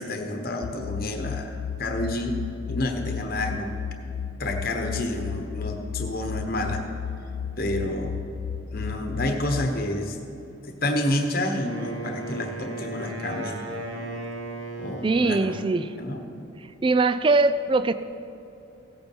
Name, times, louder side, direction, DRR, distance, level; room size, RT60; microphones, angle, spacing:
voice 1, 0.0-2.4 2.7-3.8 4.4-6.8 7.6-8.2 8.7-10.2 10.6-13.9 14.8-15.5 16.0-16.3, left 1 dB, 45° left, 4 dB, 1.1 m, -29 dB
sound 1, 0.6-9.7, left 7 dB, 85° left, 0.3 m, -33 dB
Wind instrument woodwind instrument, 11.5-15.7, right 2 dB, 65° right, 1.6 m, -36 dB
voice 2, 15.0-15.9 16.8-17.9, right 3 dB, 25° right, 12 dB, 0.3 m, -21 dB
16.0 x 8.5 x 4.5 m, 2.8 s
head